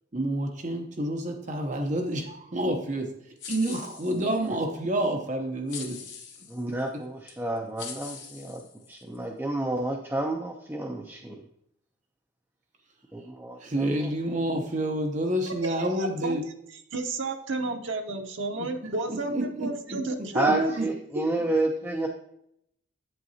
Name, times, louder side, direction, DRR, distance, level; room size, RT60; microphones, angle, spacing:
voice 1, 0.1-3.1 3.5-6.0 13.6-16.4 19.1-19.7 20.8-20.9, right 1 dB, 35° right, 3 dB, 0.8 m, -28 dB
sound 1, 3.4-4.5 5.7-6.6 7.3-7.4 7.8-9.2, left 6 dB, 60° left, 1.3 m, -42 dB
voice 2, 6.5-8.6 8.9-11.4 13.1-14.4 20.3-22.1, right 2 dB, 10° right, 1 dB, 0.5 m, -30 dB
voice 3, 15.5-16.4 16.7-20.8 21.1-21.2, right 2 dB, 70° right, 4 dB, 0.9 m, -31 dB
8.2 x 7.8 x 2.8 m, 0.74 s
head